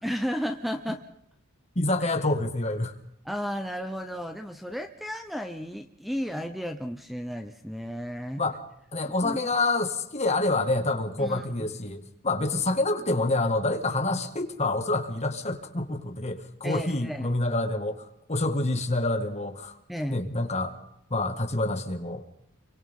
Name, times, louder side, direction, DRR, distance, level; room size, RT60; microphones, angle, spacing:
voice 1, 0.0-1.0 3.2-8.4 9.1-9.4 11.2-11.7 16.6-17.3 19.9-20.2, equal, ahead, 7 dB, 0.8 m, -33 dB
voice 2, 1.8-2.9 8.4-8.6 8.9-19.7 20.1-20.8 21.1-22.2, left 2 dB, 30° left, 5 dB, 2.0 m, -27 dB
30.0 x 23.5 x 3.7 m, 0.79 s
head